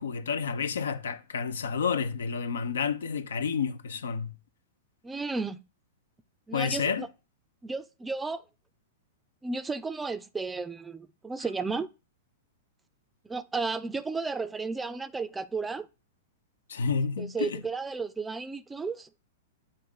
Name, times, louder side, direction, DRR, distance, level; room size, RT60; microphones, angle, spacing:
voice 1, 0.0-4.3 6.5-7.1 16.7-17.6, left 6 dB, 80° left, 0.7 m, -30 dB
voice 2, 5.0-5.6 6.5-7.1 7.6-8.4 9.4-11.9 13.2-15.9 17.2-19.1, right 4 dB, 10° right, 0.4 m, -33 dB
7.6 x 2.6 x 5.4 m
hypercardioid pair, 115°, 0 cm